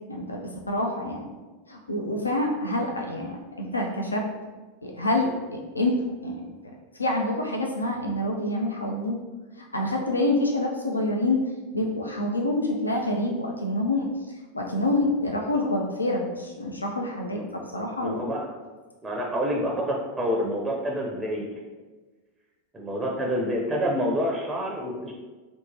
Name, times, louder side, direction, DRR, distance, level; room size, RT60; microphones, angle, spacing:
voice 1, 0.1-1.3 1.7-4.2 4.8-6.0 6.2-6.5 6.9-9.2 9.7-11.5 11.7-14.1 14.5-18.2, left 1 dB, 85° left, 0 dB, 0.3 m, -27 dB
voice 2, 18.0-18.6 19.0-21.5 22.7-25.1, equal, 15° right, -1 dB, 0.4 m, -28 dB
2.8 x 2.1 x 2.7 m, 1.3 s
figure-of-eight pair, 85°, 0 cm